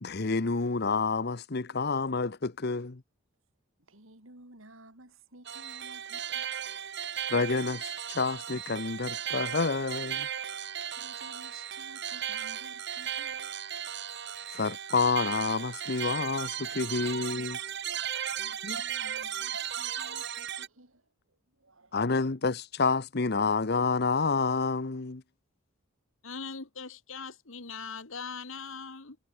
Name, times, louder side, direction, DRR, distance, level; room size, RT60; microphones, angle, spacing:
voice 1, 0.0-3.0 7.3-10.3 14.5-17.6 18.6-18.8 21.9-25.2, left 4 dB, 50° left, 0.8 m, -29 dB
voice 2, 3.9-7.4 10.9-13.5 18.3-21.0 21.3-22.3, right 2 dB, 70° right, 4.7 m, -55 dB
sound 1, 5.4-20.7, right 9 dB, 55° right, 1.9 m, -36 dB
voice 3, 26.2-29.2, left 5 dB, 65° left, 1.8 m, -40 dB
head